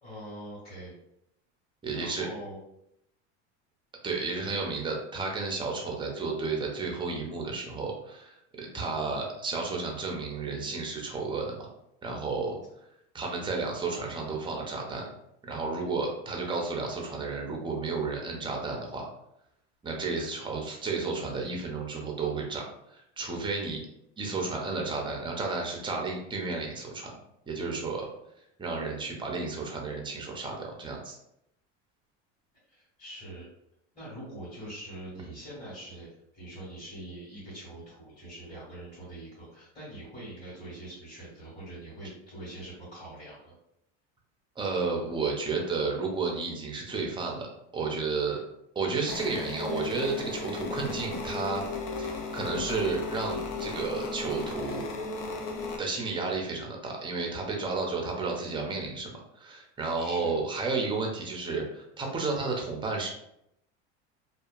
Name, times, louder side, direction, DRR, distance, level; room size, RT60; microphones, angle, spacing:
voice 1, 0.0-0.9 1.9-2.6 4.5-4.7 8.9-9.3 32.7-33.5 33.9-43.5 60.0-60.4, right 1 dB, 20° left, -10 dB, 1.5 m, -44 dB
voice 2, 1.8-2.3 4.0-11.7 12.0-12.6 13.1-15.0 15.4-19.1 19.8-22.6 22.9-23.8 24.2-27.1 27.5-28.1 28.6-31.2 44.6-47.5 47.7-48.4 48.8-51.6 52.0-54.9 55.8-63.1, right 4 dB, 15° right, 0 dB, 0.5 m, -32 dB
sound 1, 49.1-55.8, left 3 dB, 70° left, 0.7 m, -35 dB
2.7 x 2.3 x 2.4 m, 0.78 s
supercardioid pair, 115°, 36 cm